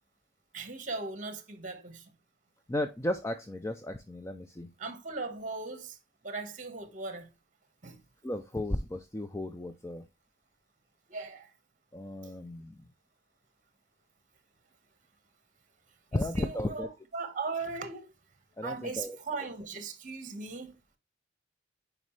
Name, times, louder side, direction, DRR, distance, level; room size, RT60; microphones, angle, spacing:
voice 1, 0.5-2.1 4.8-6.0 6.2-7.3 7.8-8.0 11.1-11.5 12.2-12.3 16.1-18.1 18.6-20.7, right 3 dB, 40° right, 1.4 m, -38 dB
voice 2, 2.7-4.7 8.2-10.0 11.9-12.7 16.1-16.9 18.6-19.2, left 1 dB, 15° left, 0.4 m, -34 dB
9.5 x 4.9 x 3.2 m
head